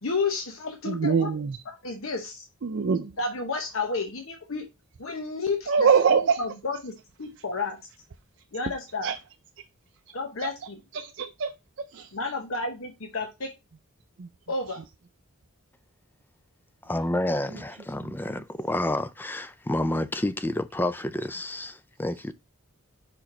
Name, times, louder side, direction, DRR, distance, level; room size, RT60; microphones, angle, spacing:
voice 1, 0.0-1.3 1.7-2.5 3.2-4.7 5.0-7.8 8.5-9.1 10.1-10.8 12.1-13.5 14.5-14.8, left 3 dB, 65° left, 1.0 m, -31 dB
voice 2, 0.9-1.6 2.6-3.1 5.7-6.4 9.0-9.2 10.9-11.5 11.9-12.1 14.2-14.3, right 6 dB, 55° right, 0.5 m, -23 dB
voice 3, 16.9-22.3, left 1 dB, 10° left, 0.3 m, -29 dB
5.2 x 4.8 x 4.3 m
head